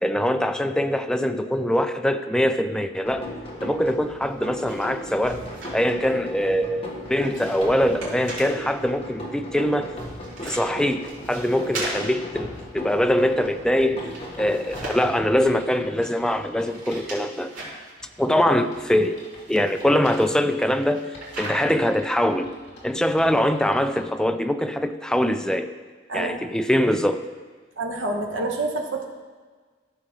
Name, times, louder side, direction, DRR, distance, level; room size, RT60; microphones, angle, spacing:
voice 1, 0.0-3.3 3.6-5.4 5.7-9.9 10.4-14.0 14.4-17.5 18.2-19.2 19.5-22.5 22.8-25.7 26.1-27.2, equal, 5° left, 8 dB, 0.3 m, -23 dB
sound 1, 3.0-15.5, equal, 30° left, 1.4 m, -37 dB
sound 2, 4.1-6.2 6.5-8.6 9.6-13.6 13.8-15.3 15.9-17.9 18.4-21.9, right 2 dB, 90° right, 2.8 m, -39 dB
sound 3, 14.0-17.1 17.5-17.6 18.0-20.5 21.1-24.0, left 1 dB, 60° left, 2.6 m, -48 dB
voice 2, 26.1-26.5 27.8-29.1, right 2 dB, 70° right, 3 dB, 1.2 m, -28 dB
13.5 x 6.2 x 3.1 m, 1.5 s
head